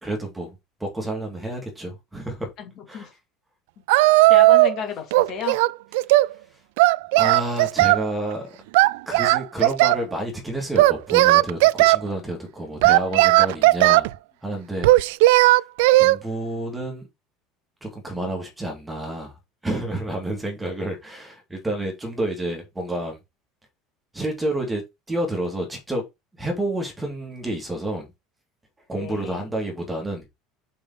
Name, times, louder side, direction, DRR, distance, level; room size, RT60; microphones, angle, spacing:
voice 1, 0.0-2.5 2.9-3.1 7.1-8.6 9.1-14.1 14.4-14.9 15.9-17.1 17.8-19.4 19.6-23.2 24.1-26.0 26.4-28.1 28.9-30.3, right 1 dB, 5° right, 2.3 m, -29 dB
voice 2, 2.6-3.1 4.3-5.6 29.0-29.5, left 8 dB, 40° left, 2.4 m, -32 dB
Singing, 3.9-4.8 5.1-6.3 6.8-8.0 8.7-10.0 10.8-12.0 12.8-14.1 14.8-16.2, right 19 dB, 75° right, 0.3 m, -16 dB
5.4 x 5.3 x 5.1 m
cardioid pair, 175°, 0 cm